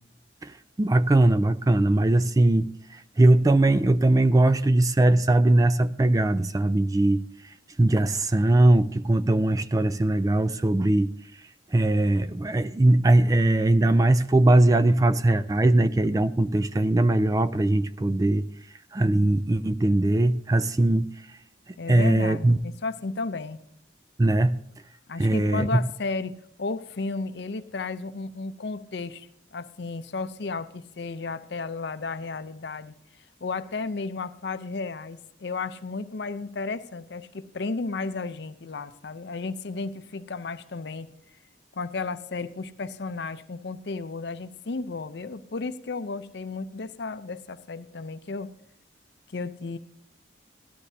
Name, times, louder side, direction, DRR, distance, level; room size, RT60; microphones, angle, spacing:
voice 1, 0.4-7.2 7.8-11.1 11.7-18.5 18.9-21.1 21.9-22.6 24.2-24.6 25.2-25.7, right 2 dB, 20° right, 13 dB, 0.3 m, -20 dB
voice 2, 21.8-23.6 25.1-32.9 33.4-41.1 41.8-48.5 49.3-49.8, left 3 dB, 65° left, 12 dB, 0.6 m, -33 dB
16.5 x 11.5 x 2.7 m, 0.72 s
head